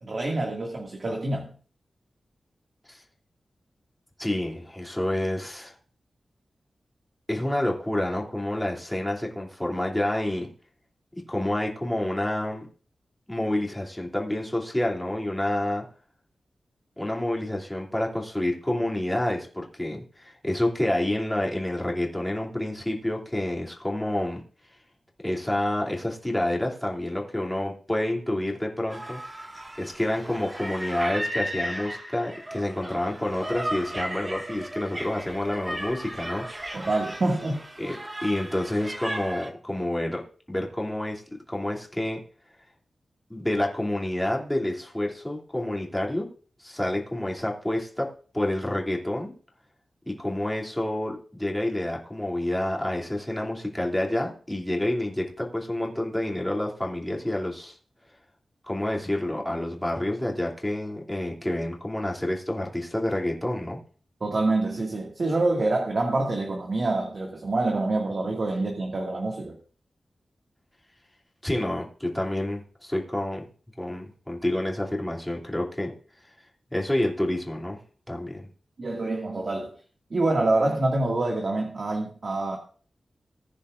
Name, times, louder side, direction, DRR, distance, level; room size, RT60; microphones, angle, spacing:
voice 1, 0.0-1.5 36.7-37.6 64.2-69.6 78.8-79.7 80.1-82.6, right 2 dB, 50° right, 2.0 m, -26 dB
voice 2, 4.2-5.7 7.3-10.5 11.1-12.7 13.3-15.8 17.0-24.4 25.2-29.2 29.8-36.9 37.8-40.2 40.5-41.2 41.5-42.2 43.3-46.3 46.6-49.3 50.0-57.8 58.6-63.8 71.4-73.5 73.8-75.9 76.7-77.8 78.1-78.4, left 1 dB, 10° left, 2.7 m, -28 dB
sound 1, 28.9-39.5, right 1 dB, 25° right, 1.7 m, -35 dB
19.5 x 9.8 x 2.5 m
wide cardioid pair, 125°, 0 cm